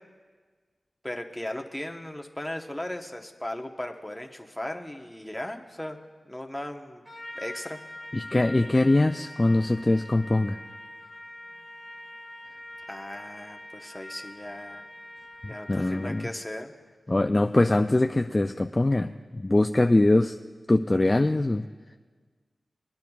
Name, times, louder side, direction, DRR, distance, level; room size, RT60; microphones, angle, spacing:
voice 1, 1.0-6.0 6.2-7.0 7.3-7.8 12.9-14.9 15.5-16.7, left 1 dB, 10° left, 3 dB, 0.9 m, -37 dB
Trumpet, 7.1-16.4, left 1 dB, 5° right, 1.7 m, -44 dB
voice 2, 8.1-10.6 15.4-16.3 17.1-20.4 20.7-21.6, left 2 dB, 30° left, 7 dB, 0.3 m, -23 dB
22.0 x 10.5 x 2.3 m, 1.5 s
cardioid pair, 60°, 0 cm